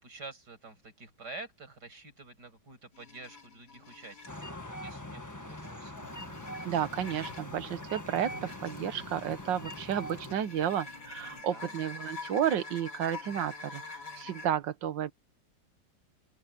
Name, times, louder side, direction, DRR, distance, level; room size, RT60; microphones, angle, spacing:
voice 1, 0.0-5.9 11.2-11.8, right 2 dB, 65° right, 7.0 m, -48 dB
sound 1, 2.9-4.5 5.2-14.5, left 3 dB, 70° left, 5.8 m, -46 dB
sound 2, 4.3-10.4, left 1 dB, 10° left, 1.4 m, -43 dB
sound 3, 6.0-11.4, left 1 dB, 90° left, 7.5 m, -55 dB
voice 2, 6.6-15.1, right 10 dB, 90° right, 1.8 m, -32 dB
open air
omnidirectional pair, 1.9 m